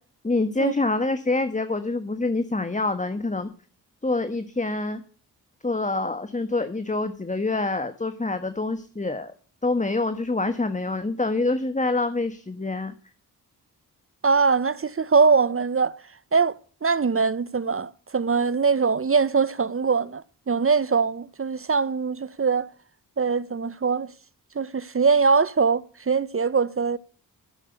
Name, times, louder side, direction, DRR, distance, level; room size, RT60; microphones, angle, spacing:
voice 1, 0.2-3.5 4.0-5.0 5.6-9.3 9.6-12.9, left 2 dB, 20° left, 1.3 m, -26 dB
voice 2, 14.2-16.0 16.3-16.6 16.8-22.7 23.2-24.1 24.5-27.0, right 5 dB, 35° right, 0.7 m, -22 dB
12.0 x 7.2 x 8.1 m
supercardioid pair, 45°, 40 cm